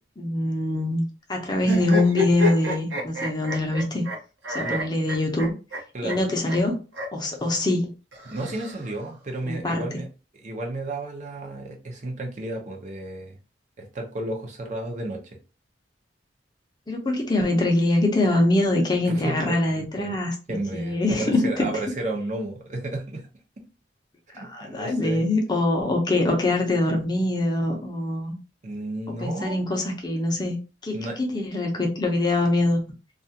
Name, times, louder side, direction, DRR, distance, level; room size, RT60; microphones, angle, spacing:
voice 1, 0.2-4.0 4.5-5.5 6.0-6.8 7.1-7.9 9.5-9.8 16.9-20.3 20.7-21.7 24.4-28.4 29.2-30.6 30.8-32.8, left 2 dB, 25° left, 2 dB, 0.6 m, -23 dB
sound 1, 1.6-4.2 4.4-5.8 6.1-6.2 6.5-6.6 6.9-7.1 8.1-9.1, left 1 dB, 80° right, 0.8 m, -29 dB
voice 2, 8.3-10.1 10.3-13.4 13.8-15.2 19.1-20.2 20.5-23.3 24.3-25.3 28.6-29.6 30.9-31.2, right 2 dB, 40° right, 1 dB, 0.6 m, -32 dB
2.4 x 2.3 x 2.7 m, 0.32 s
head